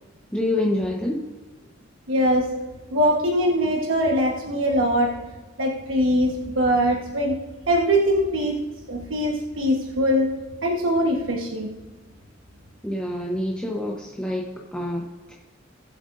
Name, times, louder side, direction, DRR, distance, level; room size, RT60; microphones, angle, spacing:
voice 1, 0.3-1.2 12.8-15.0 15.3-15.4, left 1 dB, 5° left, -3 dB, 0.9 m, -26 dB
voice 2, 2.1-2.5 2.9-5.1 5.6-7.4 7.7-8.6 8.9-10.3 10.6-11.8, equal, 80° right, 0 dB, 1.3 m, -22 dB
19.5 x 7.9 x 2.6 m, 1.3 s
head